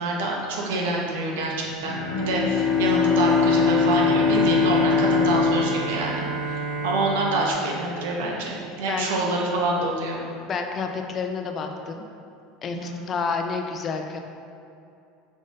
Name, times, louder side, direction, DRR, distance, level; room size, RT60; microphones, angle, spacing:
voice 1, 0.0-10.2 12.7-13.1, right 2 dB, 85° right, -2 dB, 0.7 m, -26 dB
Bowed string instrument, 1.8-6.8, left 5 dB, 65° left, 0.8 m, -22 dB
Bowed string instrument 2, 2.5-8.6, right 4 dB, 20° right, 1.5 m, -32 dB
voice 2, 10.5-12.1 12.6-14.2, left 5 dB, 30° left, 4 dB, 0.3 m, -29 dB
5.3 x 3.6 x 2.5 m, 2.5 s
supercardioid pair, 150°, 0 cm